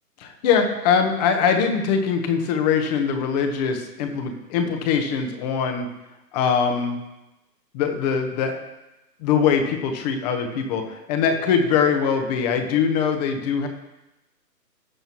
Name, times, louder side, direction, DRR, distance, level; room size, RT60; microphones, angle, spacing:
voice 1, 0.2-5.9 6.3-7.0 7.7-8.6 9.2-13.7, left 6 dB, 25° left, 5 dB, 1.3 m, -22 dB
19.0 x 6.7 x 3.1 m, 0.97 s
figure-of-eight pair, 135°, 49 cm